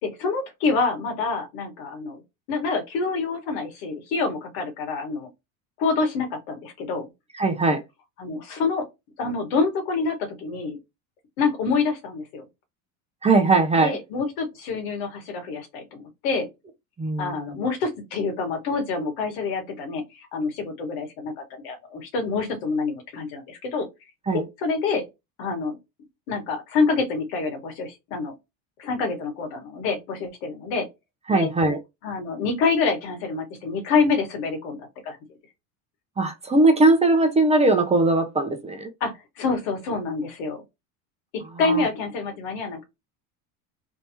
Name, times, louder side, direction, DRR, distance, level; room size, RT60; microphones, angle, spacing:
voice 1, 0.0-2.2 2.5-5.3 5.8-7.1 8.2-8.9 9.2-10.8 11.4-12.5 13.8-16.5 17.2-23.9 24.6-25.1 25.4-25.8 26.3-28.3 28.8-30.9 31.3-31.5 32.0-35.2 39.0-40.6 41.6-42.8, left 4 dB, 80° left, 1.8 m, -27 dB
voice 2, 7.3-7.8 13.2-14.0 17.0-17.4 24.3-24.4 31.3-31.8 36.2-38.9 41.6-41.9, right 2 dB, 15° right, 0.6 m, -20 dB
3.5 x 2.9 x 2.9 m
cardioid pair, 130°, 41 cm